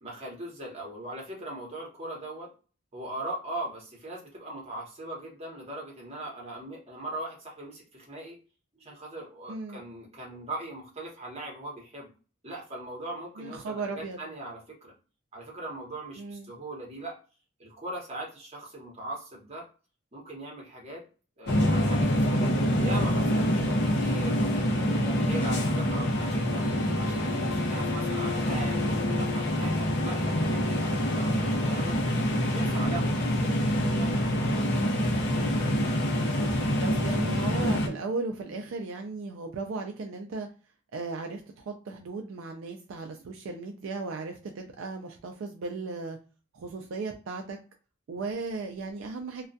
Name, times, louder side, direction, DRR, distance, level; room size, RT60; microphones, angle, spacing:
voice 1, 0.0-2.5 2.9-8.4 8.8-12.1 12.4-14.9 15.3-17.2 17.6-19.6 20.1-21.0 21.4-24.4 24.7-26.7 27.0-32.0 32.5-34.7, right 2 dB, 30° right, -2 dB, 0.9 m, -40 dB
voice 2, 9.5-9.8 13.4-14.2 16.2-16.5 35.8-40.5 40.9-46.2 46.5-47.6 48.1-49.5, right 3 dB, 65° right, 3 dB, 0.4 m, -36 dB
sound 1, 21.5-37.9, equal, 55° left, 0.6 m, -26 dB
2.2 x 2.2 x 2.5 m, 0.36 s
head